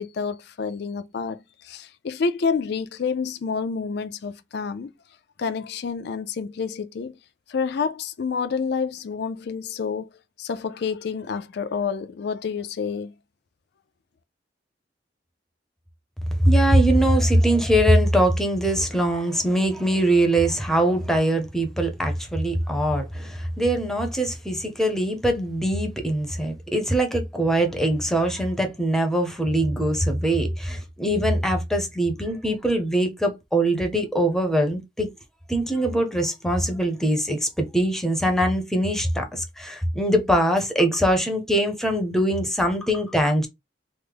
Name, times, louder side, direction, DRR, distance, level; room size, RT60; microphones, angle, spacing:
voice 1, 0.0-4.9 5.4-7.2 7.5-10.1 10.4-13.1, left 5 dB, 60° left, 0.4 m, -28 dB
voice 2, 16.4-35.1 35.5-43.5, right 1 dB, ahead, 0.6 m, -22 dB
3.3 x 2.0 x 3.3 m
head